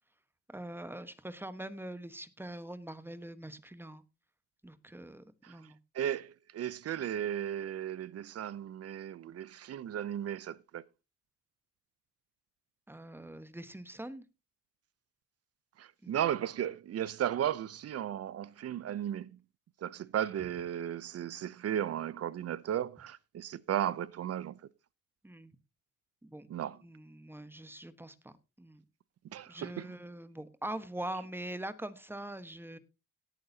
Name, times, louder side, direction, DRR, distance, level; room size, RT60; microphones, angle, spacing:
voice 1, 0.5-4.0 4.6-5.8 12.9-14.2 16.0-16.2 25.2-25.5 26.2-26.5 26.8-28.8 29.5-32.8, right 1 dB, 5° right, 1.2 m, -43 dB
voice 2, 5.9-10.8 15.8-19.4 19.8-24.6 26.5-26.8 29.3-29.9, right 10 dB, 55° right, 0.6 m, -35 dB
18.0 x 8.8 x 2.8 m
cardioid pair, 90°, 30 cm